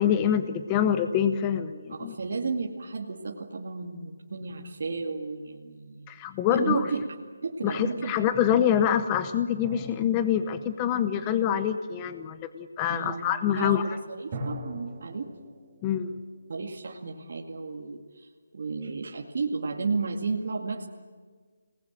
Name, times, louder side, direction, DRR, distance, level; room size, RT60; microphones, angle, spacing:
voice 1, 0.0-2.2 6.1-6.9 7.6-13.8 15.8-16.2, left 9 dB, 15° left, 10 dB, 0.8 m, -25 dB
voice 2, 1.9-6.1 6.5-7.0 7.4-8.1 12.9-13.3 13.6-15.3 16.5-20.9, right 4 dB, 55° right, 0 dB, 2.3 m, -33 dB
sound 1, 9.6-11.9 14.3-17.2, equal, 30° right, 6.0 m, -42 dB
27.0 x 19.5 x 9.0 m, 1.5 s
hypercardioid pair, 170°, 0 cm